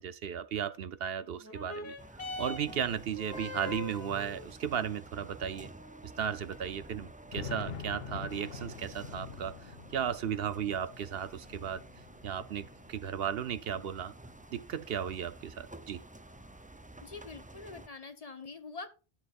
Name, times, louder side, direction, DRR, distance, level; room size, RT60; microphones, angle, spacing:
voice 1, 0.0-2.0 2.4-5.7 6.0-11.8 12.2-14.1 14.5-16.0, right 8 dB, 70° right, 0.9 m, -35 dB
sound 1, 1.4-10.4 11.2-11.3, left 2 dB, 15° left, 2.0 m, -46 dB
sound 2, 2.0-17.9, right 1 dB, 10° right, 0.4 m, -51 dB
sound 3, 7.0-13.3 13.8-14.7, left 5 dB, 70° left, 1.2 m, -46 dB
voice 2, 17.0-18.9, left 4 dB, 40° left, 1.0 m, -45 dB
13.5 x 7.4 x 2.5 m
omnidirectional pair, 1.0 m